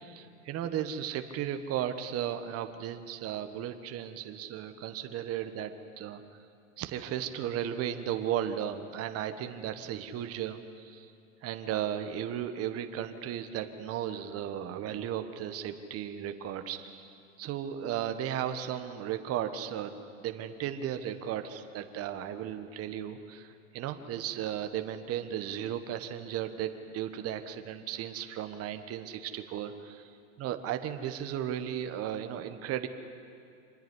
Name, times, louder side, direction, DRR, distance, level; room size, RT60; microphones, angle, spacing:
voice 1, 0.0-6.2 6.8-11.1 11.4-30.1 30.4-32.9, right 10 dB, 35° right, 8 dB, 1.3 m, -35 dB
26.0 x 10.0 x 10.0 m, 2.4 s
supercardioid pair, 125°, 41 cm